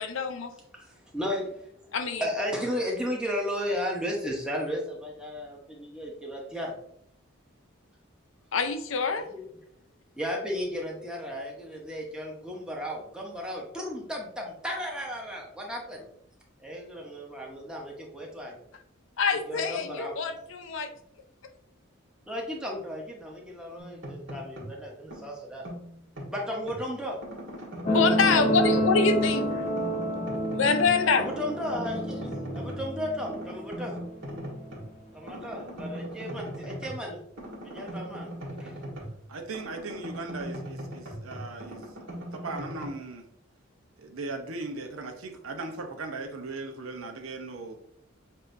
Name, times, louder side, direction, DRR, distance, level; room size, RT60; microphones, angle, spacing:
voice 1, 0.0-0.5 1.9-2.3 8.5-9.3 19.2-20.9 27.9-29.6 30.5-31.3, left 4 dB, 70° left, 8 dB, 0.5 m, -25 dB
voice 2, 0.7-1.7 2.2-6.7 9.3-9.4 10.2-16.1 16.6-18.6 19.5-20.1 22.3-25.7 26.3-27.2 31.2-34.0 35.1-37.2 37.6-38.3 38.6-38.8, equal, 5° right, -1 dB, 0.9 m, -34 dB
sound 1, 23.8-24.8 25.1-26.8 27.2-29.0 29.3-31.0 31.3-32.9 33.2-34.9 35.3-39.2 39.5-42.9, equal, 65° right, 1.8 m, -40 dB
sound 2, 27.9-34.9 35.8-35.9, equal, 35° left, 0.7 m, -29 dB
voice 3, 39.3-41.9 42.3-43.3 44.0-47.8, right 3 dB, 85° right, 4 dB, 0.8 m, -38 dB
7.4 x 2.7 x 2.6 m, 0.70 s
head